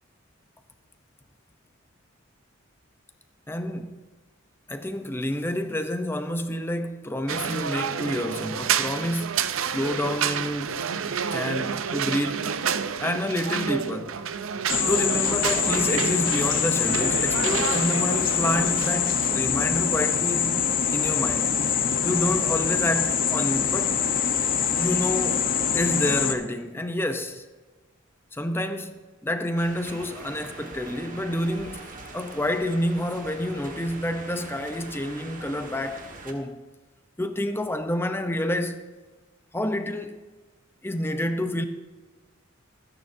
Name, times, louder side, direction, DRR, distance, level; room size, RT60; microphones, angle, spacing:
voice 1, 3.5-4.0 4.7-10.8 11.3-12.5 13.0-14.2 14.9-20.6 20.9-21.6 22.0-24.0 24.8-25.5 25.7-27.4 28.3-31.9 32.1-36.6 37.2-38.8 39.5-40.2 40.8-41.7, left 1 dB, 10° left, 0.7 m, -28 dB
sound 1, 7.3-19.4, right 7 dB, 75° right, 0.6 m, -29 dB
sound 2, 14.7-26.3, left 7 dB, 45° left, 1.0 m, -24 dB
sound 3, 29.6-36.3, right 3 dB, 40° right, 1.5 m, -42 dB
25.5 x 9.9 x 2.7 m
head